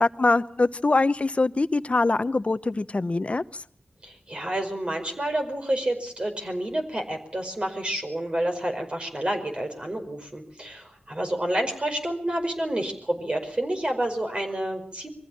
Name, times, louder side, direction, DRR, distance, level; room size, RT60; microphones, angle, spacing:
voice 1, 0.0-3.6, left 3 dB, 45° left, 14 dB, 0.9 m, -23 dB
voice 2, 4.0-15.1, right 1 dB, 35° right, 4 dB, 5.1 m, -29 dB
23.5 x 15.5 x 8.6 m, 0.62 s
wide cardioid pair, 55°, 3 cm